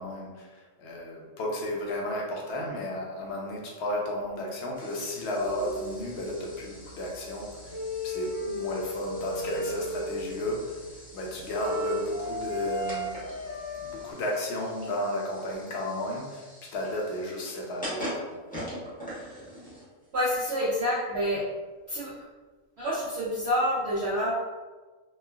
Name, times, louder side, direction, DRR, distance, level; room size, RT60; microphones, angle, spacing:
voice 1, 0.0-10.8 11.1-13.1 13.8-18.4, left 1 dB, 65° left, -2 dB, 0.8 m, -33 dB
sound 1, 4.7-20.1, equal, 10° left, 0.7 m, -44 dB
sound 2, 5.4-14.1, equal, 80° left, 1.2 m, -35 dB
voice 2, 20.1-21.4 21.9-22.1 22.8-24.3, equal, 60° right, -8 dB, 0.7 m, -27 dB
3.0 x 2.3 x 2.3 m, 1.3 s
omnidirectional pair, 1.5 m